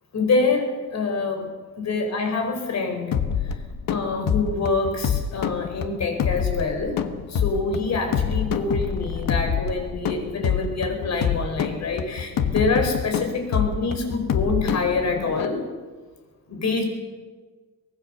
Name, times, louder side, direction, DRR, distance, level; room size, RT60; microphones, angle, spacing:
voice 1, 0.1-1.5 1.8-3.2 3.4-3.5 3.9-7.0 7.3-15.6 16.5-16.8, left 3 dB, 50° left, 4 dB, 4.9 m, -26 dB
sound 1, 3.1-15.5, left 7 dB, 70° left, 1.4 m, -26 dB
24.0 x 20.0 x 6.6 m, 1.4 s
wide cardioid pair, 175°, 35 cm